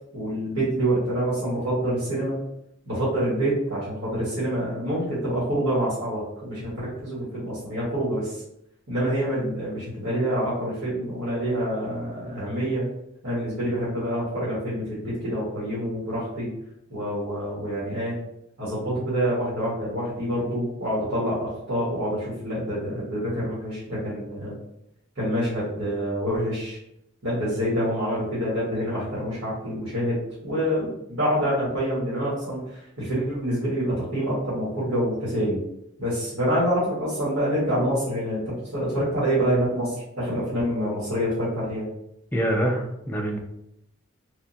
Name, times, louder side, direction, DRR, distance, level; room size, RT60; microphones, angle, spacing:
voice 1, 0.1-2.4 2.8-8.4 8.9-12.9 13.2-16.5 16.9-18.1 18.6-24.5 25.1-26.8 27.2-35.6 36.0-41.9, equal, 75° right, -9 dB, 1.4 m, -26 dB
voice 2, 42.3-43.4, right 1 dB, 10° left, 0 dB, 0.3 m, -25 dB
3.5 x 2.2 x 2.6 m, 0.80 s
head